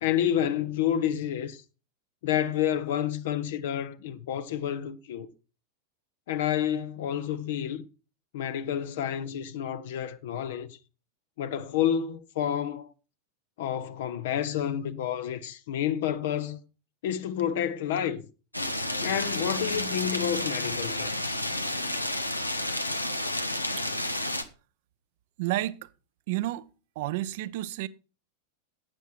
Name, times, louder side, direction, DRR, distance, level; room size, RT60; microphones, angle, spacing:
voice 1, 0.0-1.6 2.2-5.3 6.3-7.8 8.3-10.8 11.4-12.9 13.6-16.6 17.0-18.2 19.0-21.4, left 10 dB, 55° left, 0.9 m, -29 dB
sound 1, 18.5-24.4, left 1 dB, 85° left, 1.0 m, -30 dB
voice 2, 25.4-25.9 26.3-26.7 27.0-27.9, right 16 dB, 50° right, 0.7 m, -31 dB
12.5 x 8.2 x 4.5 m
figure-of-eight pair, 90°, 0 cm